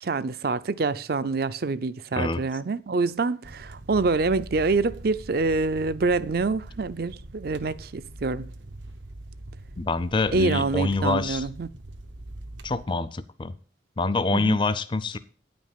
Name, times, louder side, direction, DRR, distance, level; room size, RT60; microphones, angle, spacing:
voice 1, 0.0-8.5 10.3-11.7 14.3-14.6, right 3 dB, 55° right, 0.5 m, -26 dB
sound 1, 3.4-12.8, right 1 dB, 85° right, 1.0 m, -42 dB
voice 2, 9.8-11.5 12.6-13.5 14.0-15.2, left 3 dB, 25° left, 0.4 m, -26 dB
9.8 x 5.2 x 7.4 m
head